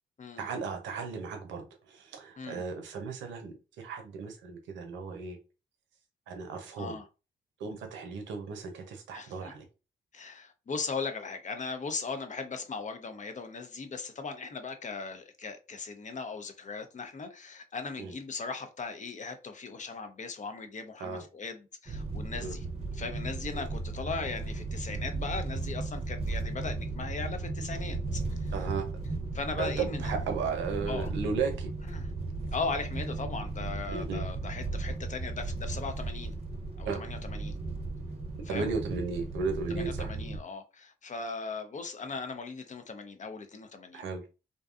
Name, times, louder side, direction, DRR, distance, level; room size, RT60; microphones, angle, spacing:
voice 1, 0.4-5.4 6.3-7.0 7.6-9.6 18.0-18.1 21.0-21.2 22.4-22.5 28.5-28.9 29.6-31.7 33.9-34.2 36.8-37.0 38.5-40.1 43.9-44.3, right 5 dB, 80° right, 0.7 m, -35 dB
voice 2, 9.1-9.5 10.1-22.6 22.9-28.5 29.3-30.1 30.5-30.6 30.9-31.1 31.9-32.1 32.5-36.3 36.8-37.6 38.5-38.7 39.8-44.0, left 4 dB, 40° left, 0.6 m, -38 dB
sound 1, 21.9-40.4, right 3 dB, 30° right, 0.7 m, -35 dB
2.6 x 2.2 x 2.4 m
hypercardioid pair, 45°, 19 cm